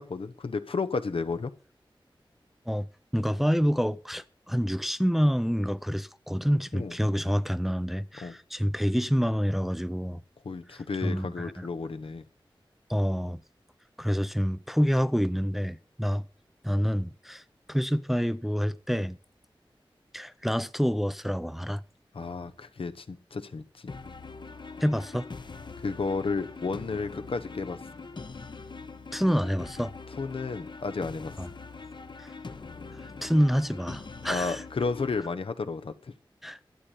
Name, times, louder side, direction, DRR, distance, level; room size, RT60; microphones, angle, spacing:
voice 1, 0.0-1.5 6.7-6.9 8.2-8.4 10.4-12.3 22.1-23.9 25.8-27.8 30.2-31.3 34.3-36.1, left 4 dB, 85° left, 1.0 m, -32 dB
voice 2, 3.1-10.2 11.0-11.7 12.9-13.4 14.0-16.2 16.6-17.4 17.7-19.2 20.1-21.8 24.8-25.3 29.1-29.9 31.4-31.5 32.2-32.3 33.0-34.6 36.4-36.6, equal, ahead, 0.5 m, -27 dB
sound 1, 23.9-35.3, left 4 dB, 60° left, 1.0 m, -42 dB
12.0 x 8.4 x 5.6 m
wide cardioid pair, 85°, 9 cm